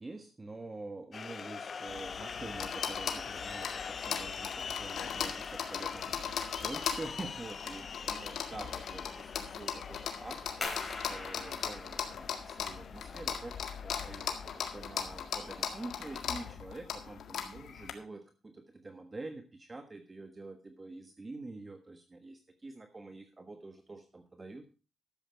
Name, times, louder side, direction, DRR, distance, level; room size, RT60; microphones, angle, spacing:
voice 1, 0.0-24.7, right 2 dB, 20° right, 6 dB, 1.4 m, -46 dB
sound 1, 1.1-16.6, left 6 dB, 45° left, 0.5 m, -44 dB
sound 2, 1.9-17.9, left 8 dB, 75° left, 1.8 m, -39 dB
sound 3, 10.6-15.9, left 3 dB, 30° left, 4.0 m, -45 dB
12.5 x 7.7 x 5.1 m, 0.33 s
cardioid pair, 110°, 0 cm